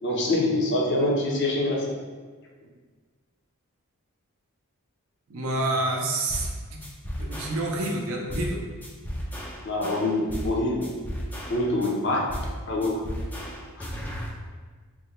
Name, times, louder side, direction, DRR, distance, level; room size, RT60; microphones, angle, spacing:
voice 1, 0.0-1.8 9.6-10.9 11.5-12.3 12.7-13.0 13.8-13.9, left 1 dB, 50° left, -2 dB, 0.6 m, -25 dB
voice 2, 5.3-6.8 7.2-8.6, right 2 dB, 70° right, 0 dB, 0.5 m, -28 dB
sound 1, 6.3-6.5 6.8-7.9 8.3-8.5 8.8-10.5 10.8-11.9 12.3-12.6 12.8-14.3, equal, 10° left, 0.3 m, -34 dB
3.7 x 2.2 x 2.9 m, 1.5 s
head